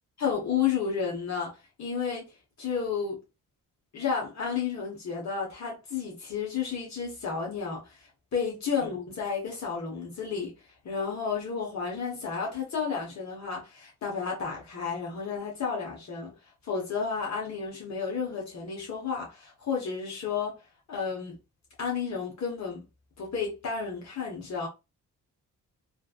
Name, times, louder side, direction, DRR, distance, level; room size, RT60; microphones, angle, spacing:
voice 1, 0.2-2.3 2.6-3.2 3.9-10.5 10.8-16.3 16.6-20.6 20.9-21.4 21.8-22.8 23.2-24.7, left 6 dB, 55° left, 1.1 m, -32 dB
3.2 x 2.5 x 2.3 m
wide cardioid pair, 145°, 33 cm